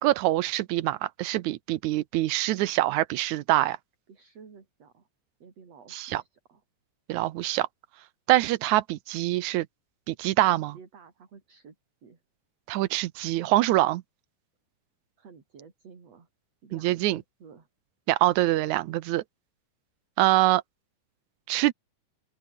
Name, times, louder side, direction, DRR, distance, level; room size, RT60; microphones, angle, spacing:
voice 1, 0.0-3.8 5.9-6.2 7.1-7.7 8.3-9.7 10.1-10.7 12.7-14.0 16.8-17.2 18.1-19.2 20.2-20.6 21.5-21.7, right 16 dB, 75° right, 2.0 m, -24 dB
voice 2, 4.1-5.1 5.4-6.6 10.5-11.8 12.0-12.2 15.2-16.3 16.6-17.7, right 5 dB, 50° right, 4.8 m, -51 dB
omnidirectional pair, 3.7 m